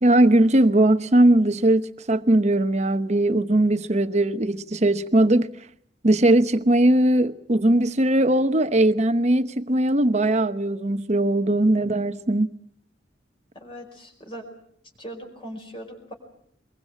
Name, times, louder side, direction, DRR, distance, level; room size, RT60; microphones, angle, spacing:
voice 1, 0.0-5.5 6.0-12.6, right 1 dB, 35° right, 1.0 m, -19 dB
voice 2, 13.5-14.4 15.0-16.1, equal, 30° left, 4.9 m, -39 dB
23.0 x 22.5 x 7.6 m
head